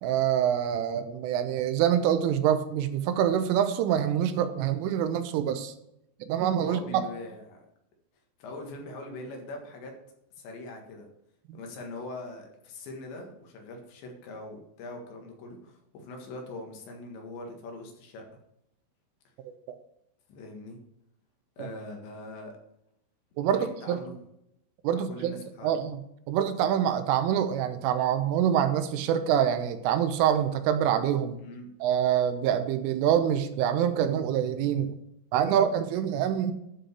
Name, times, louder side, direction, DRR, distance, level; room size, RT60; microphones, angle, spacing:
voice 1, 0.0-5.7 6.3-7.1 11.5-11.6 21.6-21.7 23.4-24.0 24.8-26.0 26.3-31.4 31.8-34.9 35.3-36.5, right 9 dB, 85° right, 9 dB, 3.3 m, -26 dB
voice 2, 6.6-7.6 8.4-9.9 10.4-11.1 11.5-18.3 20.3-20.8 21.6-22.6 23.5-24.2 24.9-25.8 31.4-31.7, left 2 dB, 70° left, 2 dB, 3.8 m, -42 dB
11.5 x 5.2 x 6.4 m, 0.79 s
omnidirectional pair, 5.7 m